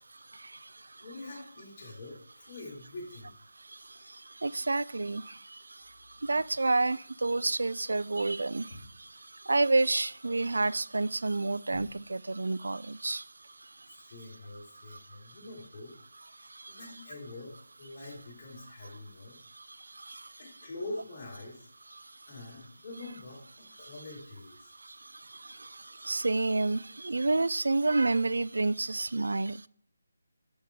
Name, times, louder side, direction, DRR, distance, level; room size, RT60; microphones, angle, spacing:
voice 1, 0.2-1.0 3.6-14.1 14.9-15.4 16.3-16.8 19.4-20.4 21.9-22.3 23.8-23.9 24.6-29.7, right 2 dB, 85° right, 0.3 m, -31 dB
voice 2, 1.0-3.3 13.9-15.9 16.7-19.4 20.4-21.7 22.3-24.7, left 2 dB, 25° left, 3.9 m, -45 dB
sound 1, 8.7-9.2 11.7-12.3, left 2 dB, 45° left, 2.6 m, -49 dB
8.5 x 6.4 x 3.6 m
figure-of-eight pair, 170°, 0 cm